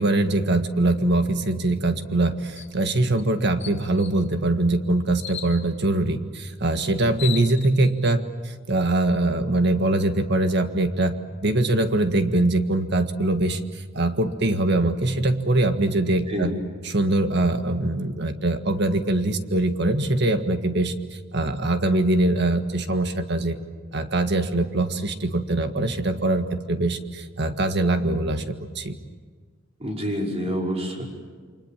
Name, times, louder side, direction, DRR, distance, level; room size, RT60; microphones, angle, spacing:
voice 1, 0.0-11.1 11.4-16.5 16.8-23.6 23.9-29.0, right 2 dB, 60° right, 7 dB, 1.7 m, -23 dB
sound 1, 2.6-2.7 3.2-3.3 3.6-4.2 5.2-5.6 6.7-6.8 7.0-7.9, left 10 dB, 65° left, 3.0 m, -35 dB
voice 2, 29.8-31.1, equal, 30° right, -1 dB, 5.4 m, -27 dB
29.5 x 25.0 x 7.5 m, 1.5 s
head